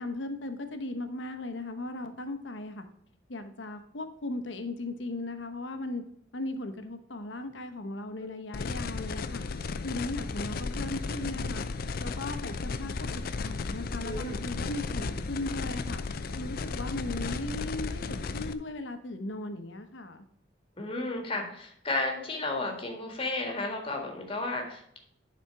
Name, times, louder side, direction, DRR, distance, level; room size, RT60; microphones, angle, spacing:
voice 1, 0.0-2.8 3.3-6.0 6.3-9.5 9.8-11.6 12.0-16.0 16.4-20.2, left 2 dB, 80° left, 8 dB, 1.0 m, -37 dB
sound 1, 8.5-18.5, left 4 dB, 55° left, 0.5 m, -34 dB
voice 2, 14.0-14.5 20.8-25.0, left 2 dB, 30° left, 2 dB, 1.7 m, -33 dB
10.0 x 4.4 x 4.7 m, 0.69 s
head